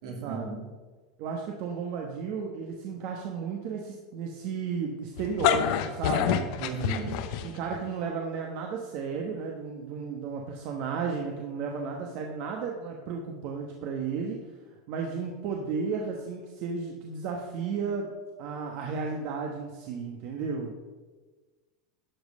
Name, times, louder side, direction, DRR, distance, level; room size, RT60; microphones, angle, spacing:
voice 1, 0.0-0.6 6.6-7.2, right 5 dB, 70° right, 1 dB, 2.5 m, -35 dB
voice 2, 1.2-6.5 7.4-18.1 18.4-20.8, right 5 dB, 55° right, 1 dB, 1.2 m, -33 dB
sound 1, 5.2-7.8, left 10 dB, 60° left, 0.8 m, -27 dB
11.5 x 5.3 x 5.4 m, 1.3 s
supercardioid pair, 130°, 4 cm